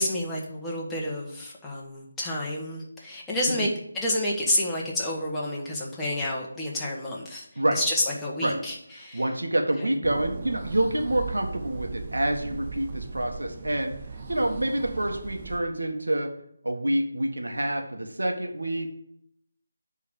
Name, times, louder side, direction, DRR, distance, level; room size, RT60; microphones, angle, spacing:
voice 1, 0.0-3.7 3.9-7.5 7.7-9.2, left 1 dB, 5° left, -6 dB, 1.4 m, -29 dB
voice 2, 9.1-13.9 14.3-16.3 16.6-18.9, right 1 dB, 85° right, 3 dB, 1.5 m, -27 dB
sound 1, 10.0-15.6, right 4 dB, 35° right, 0.9 m, -38 dB
9.0 x 3.7 x 6.9 m, 0.73 s
figure-of-eight pair, 160°, 0 cm